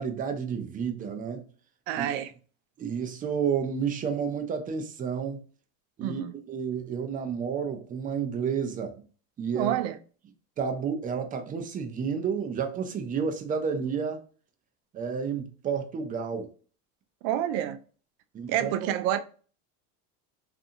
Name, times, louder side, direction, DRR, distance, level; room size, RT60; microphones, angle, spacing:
voice 1, 0.0-1.4 1.9-2.1 2.8-5.4 6.0-6.2 6.5-9.0 9.4-9.7 10.6-14.2 14.9-16.5 18.3-18.9, right 6 dB, 20° right, 0.4 m, -31 dB
voice 2, 1.9-2.3 6.0-6.3 9.5-10.0 17.2-17.8 18.5-19.2, right 11 dB, 70° right, 0.5 m, -28 dB
2.6 x 2.5 x 2.5 m
supercardioid pair, 120°, 42 cm